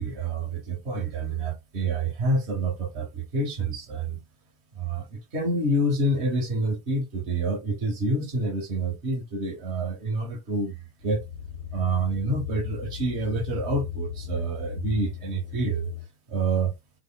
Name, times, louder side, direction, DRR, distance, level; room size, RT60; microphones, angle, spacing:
voice 1, 0.0-4.2 4.7-10.7 11.0-11.2 11.7-15.9 16.3-16.7, right 2 dB, 45° right, 1.1 m, -27 dB
sound 1, 11.0-16.1, left 10 dB, 75° right, 1.6 m, -36 dB
3.4 x 2.4 x 2.3 m
figure-of-eight pair, 90°, 0 cm